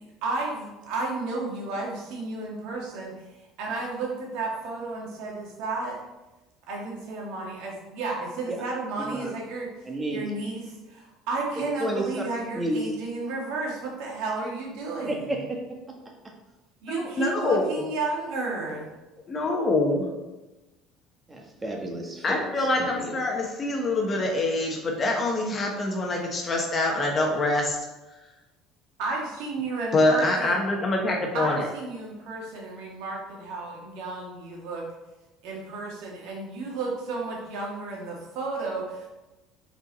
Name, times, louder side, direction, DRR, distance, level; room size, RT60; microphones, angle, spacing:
voice 1, 0.2-6.0 6.7-15.3 16.8-19.0 29.0-30.7 31.3-34.9 35.4-39.1, right 3 dB, 75° right, -1 dB, 1.8 m, -32 dB
voice 2, 9.0-9.3 9.9-10.2 11.8-12.0 12.5-12.8 15.1-15.8 21.3-23.1, right 1 dB, 20° right, 0 dB, 1.5 m, -31 dB
voice 3, 16.9-17.7 19.3-20.0 22.2-27.8 29.9-31.7, left 2 dB, 35° left, 0 dB, 1.1 m, -25 dB
5.3 x 4.6 x 4.1 m, 1.1 s
supercardioid pair, 105°, 0 cm